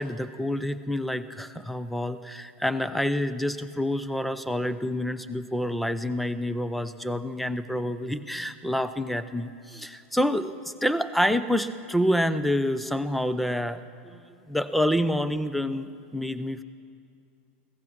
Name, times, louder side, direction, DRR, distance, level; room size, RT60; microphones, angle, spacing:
voice 1, 0.0-14.2 14.5-16.6, equal, ahead, 12 dB, 0.6 m, -28 dB
16.0 x 14.5 x 6.0 m, 2.5 s
hypercardioid pair, 120°, 7 cm